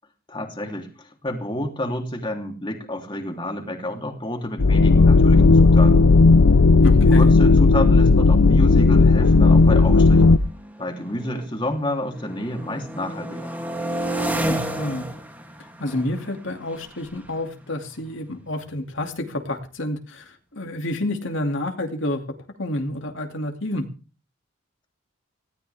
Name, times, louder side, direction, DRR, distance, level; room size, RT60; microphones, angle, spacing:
voice 1, 0.3-6.1 7.1-10.4 10.8-13.6, left 1 dB, 20° left, 2 dB, 3.3 m, -29 dB
sound 1, 4.6-10.4, left 3 dB, 80° left, 0.8 m, -14 dB
sound 2, 6.3-6.4 6.6-7.0 7.7-11.7 12.0-18.7, right 1 dB, 10° right, 2.7 m, -33 dB
voice 2, 6.8-7.3 14.5-15.1 15.8-22.2 22.6-23.8, left 1 dB, 60° left, 3 dB, 2.6 m, -29 dB
20.0 x 17.0 x 3.5 m, 0.35 s
head